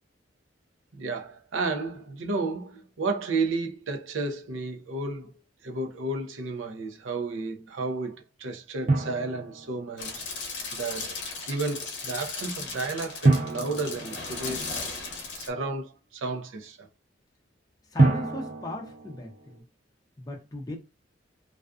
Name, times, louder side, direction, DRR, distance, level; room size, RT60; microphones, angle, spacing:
voice 1, 0.9-5.3 5.6-10.2 10.7-11.2 11.5-14.8 15.3-16.9, right 3 dB, 90° right, 0.5 m, -32 dB
Drum, 8.9-10.4 13.2-15.0 18.0-19.6, right 2 dB, 40° right, 0.4 m, -27 dB
sound 1, 10.0-15.5, left 4 dB, 70° left, 0.6 m, -36 dB
voice 2, 17.9-19.6 20.2-20.8, left 1 dB, 20° left, 0.4 m, -37 dB
2.4 x 2.3 x 2.3 m
head